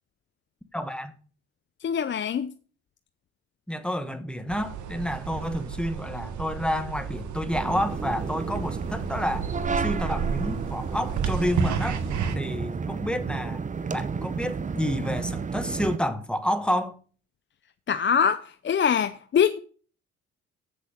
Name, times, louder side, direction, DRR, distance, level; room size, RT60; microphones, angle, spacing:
voice 1, 0.7-1.1 3.7-9.5 9.8-12.0 12.3-13.6 13.9-16.9, equal, 5° left, 1.2 m, -29 dB
voice 2, 1.8-2.5 17.9-19.6, left 7 dB, 40° left, 0.6 m, -23 dB
sound 1, 4.5-12.4, right 6 dB, 75° right, 1.3 m, -32 dB
sound 2, 7.5-16.0, right 5 dB, 25° right, 0.7 m, -32 dB
7.8 x 6.7 x 6.4 m
cardioid pair, 90°, 30 cm